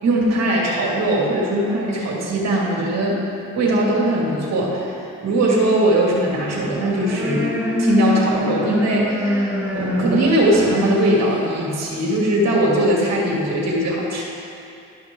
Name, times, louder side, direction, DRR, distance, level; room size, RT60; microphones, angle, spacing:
voice 1, 0.0-3.1 3.6-7.4 7.8-14.2, right 1 dB, 60° right, -3 dB, 2.1 m, -20 dB
sound 1, 6.6-11.8, left 2 dB, 5° right, 1.3 m, -25 dB
12.0 x 5.8 x 3.7 m, 2.6 s
cardioid pair, 90°, 30 cm